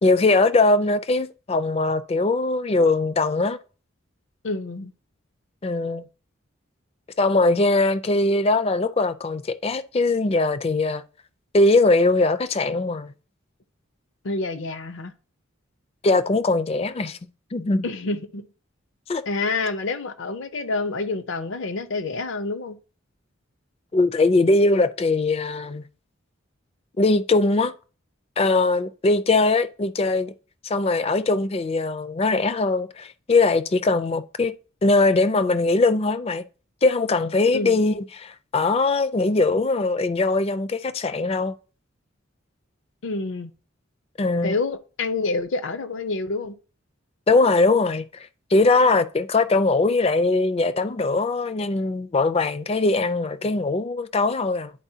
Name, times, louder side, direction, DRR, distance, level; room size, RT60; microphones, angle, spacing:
voice 1, 0.0-3.6 5.6-6.1 7.2-11.0 11.5-13.1 16.0-17.2 17.5-17.8 19.1-19.2 23.9-25.8 27.0-27.7 28.4-30.3 30.6-34.5 34.8-36.4 36.8-41.5 44.2-44.5 47.3-54.7, left 3 dB, 30° left, 0.4 m, -21 dB
voice 2, 4.4-4.9 14.2-15.1 17.8-18.4 19.3-22.8 37.5-37.8 43.0-43.5 44.4-46.6, left 3 dB, 70° left, 0.6 m, -28 dB
10.0 x 4.3 x 2.7 m
head